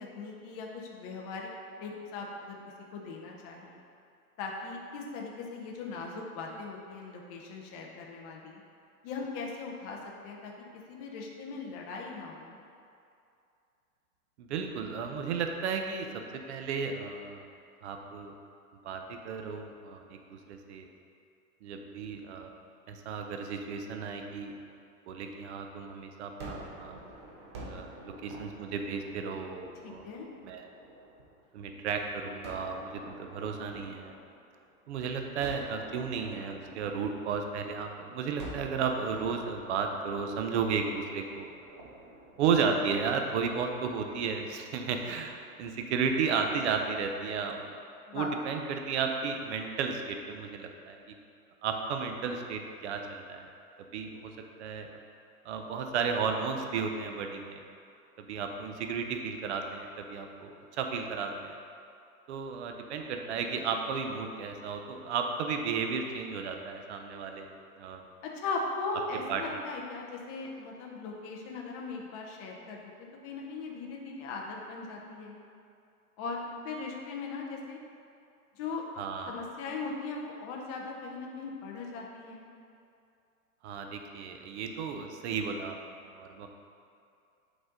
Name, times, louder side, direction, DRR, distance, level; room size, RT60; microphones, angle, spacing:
voice 1, 0.0-1.5 1.8-2.6 2.9-3.8 4.4-8.6 9.0-10.0 10.2-10.5 10.9-12.6 29.8-30.3 48.1-48.6 63.5-63.6 68.2-75.4 76.2-77.8 78.5-78.8 79.3-82.5, left 3 dB, 25° left, -1 dB, 0.6 m, -39 dB
voice 2, 14.4-17.5 17.8-18.3 18.8-20.9 21.6-22.5 22.9-24.5 25.1-27.0 27.6-30.0 30.4-30.7 31.5-34.1 34.9-41.5 42.4-47.7 48.1-51.2 51.6-53.5 53.9-54.3 54.6-54.9 55.4-57.6 58.3-61.6 62.3-67.5 67.8-68.0 69.3-69.4 79.0-79.4 83.6-86.5, right 5 dB, 50° right, 4 dB, 0.7 m, -33 dB
Gunshot gunfire, 26.4-31.5 32.4-34.8 35.4-37.9 38.4-43.6, right 2 dB, 20° right, 0.4 m, -48 dB
8.0 x 4.0 x 3.8 m, 2.5 s
hypercardioid pair, 140°, 45 cm